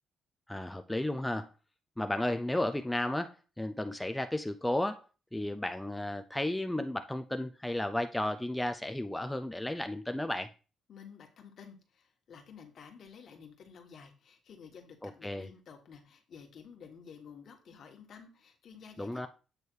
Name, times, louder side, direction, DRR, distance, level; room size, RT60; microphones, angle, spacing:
voice 1, 0.5-1.5 2.0-5.1 5.3-10.5 15.0-15.5 19.0-19.3, left 1 dB, 5° left, 0.5 m, -33 dB
voice 2, 10.9-19.3, left 6 dB, 60° left, 1.6 m, -52 dB
8.1 x 3.4 x 4.6 m
cardioid pair, 90°, 0 cm